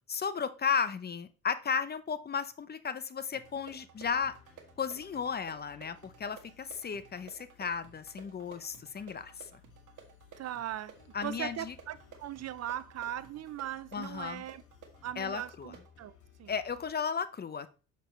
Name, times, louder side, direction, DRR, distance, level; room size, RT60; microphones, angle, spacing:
voice 1, 0.1-4.3 4.8-9.6 11.1-11.7 13.9-14.4 15.2-15.7 16.5-17.7, left 6 dB, 35° left, 0.6 m, -34 dB
sound 1, 3.3-15.9, right 7 dB, 80° right, 1.6 m, -56 dB
sound 2, 3.4-16.9, left 7 dB, 75° left, 2.1 m, -60 dB
voice 2, 10.4-10.9 11.2-14.6 15.0-16.1 16.4-16.5, right 12 dB, 55° right, 0.5 m, -39 dB
6.8 x 6.4 x 3.1 m
cardioid pair, 90°, 30 cm